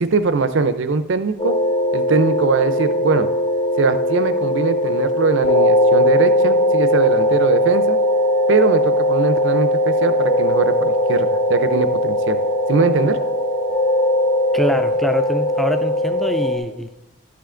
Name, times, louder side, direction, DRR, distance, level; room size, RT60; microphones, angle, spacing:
voice 1, 0.0-1.5 1.9-3.3 3.8-8.0 8.5-12.4 12.7-13.2, right 4 dB, 65° right, 11 dB, 0.5 m, -21 dB
sound 1, 1.4-16.6, left 1 dB, 35° left, 0.8 m, -19 dB
voice 2, 14.5-16.9, equal, ahead, 9 dB, 0.3 m, -24 dB
11.5 x 5.8 x 3.8 m, 0.96 s
head